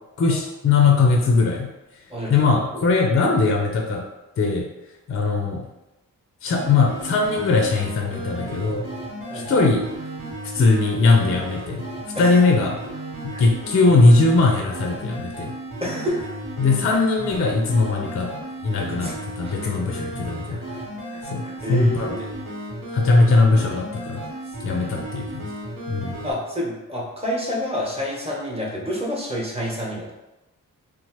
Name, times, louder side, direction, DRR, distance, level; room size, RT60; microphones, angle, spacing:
voice 1, 0.2-1.7 2.3-4.0 4.4-4.7 5.1-5.7 6.4-8.8 9.3-9.9 10.5-11.9 12.2-12.8 13.2-15.5 16.6-18.3 18.6-19.1 19.4-20.6 21.2-21.4 21.7-22.2 22.9-24.2 24.6-25.5 25.9-26.2, left 3 dB, 40° left, 1 dB, 0.4 m, -19 dB
sound 1, 6.5-26.3, right 1 dB, 80° right, 1.0 m, -34 dB
voice 2, 15.8-16.3 18.9-20.1 20.5-20.6 21.1-22.2 24.7-24.9 26.2-30.1, equal, 15° right, -4 dB, 0.9 m, -29 dB
2.9 x 2.0 x 2.9 m, 1.0 s
cardioid pair, 55°, 34 cm